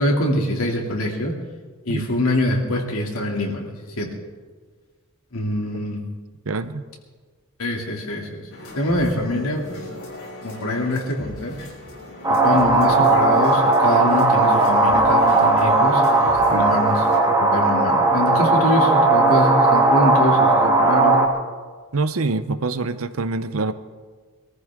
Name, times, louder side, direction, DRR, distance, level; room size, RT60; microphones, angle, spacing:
voice 1, 0.0-1.3 1.8-4.1 5.3-6.0 7.6-9.8 10.4-11.6 12.3-21.2, left 1 dB, 85° left, 0 dB, 2.7 m, -24 dB
voice 2, 6.4-6.9 16.5-16.8 21.9-23.7, right 3 dB, 75° right, 12 dB, 0.8 m, -25 dB
sound 1, 8.5-17.2, left 2 dB, 65° left, 6.1 m, -38 dB
sound 2, 12.2-21.3, right 2 dB, 20° right, 1.7 m, -17 dB
23.0 x 14.0 x 3.7 m, 1.4 s
head